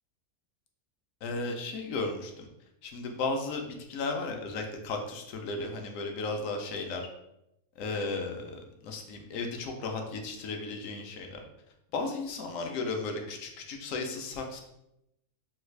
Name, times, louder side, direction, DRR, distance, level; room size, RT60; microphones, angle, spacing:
voice 1, 1.2-2.5 2.8-7.1 7.8-11.4 11.9-14.6, left 3 dB, 70° left, 3 dB, 0.9 m, -35 dB
3.2 x 2.3 x 3.1 m, 0.84 s
omnidirectional pair, 1.6 m